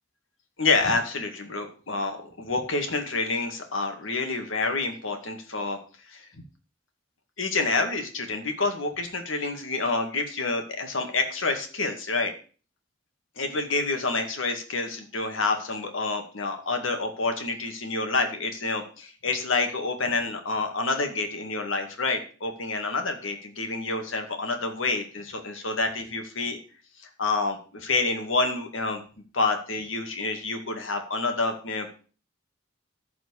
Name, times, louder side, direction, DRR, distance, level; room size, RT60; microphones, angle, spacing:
voice 1, 0.6-5.8 6.1-6.2 7.4-12.3 13.4-26.6 27.0-29.0 29.3-31.9, left 3 dB, 85° left, 5 dB, 2.2 m, -28 dB
14.5 x 5.0 x 6.5 m, 0.39 s
head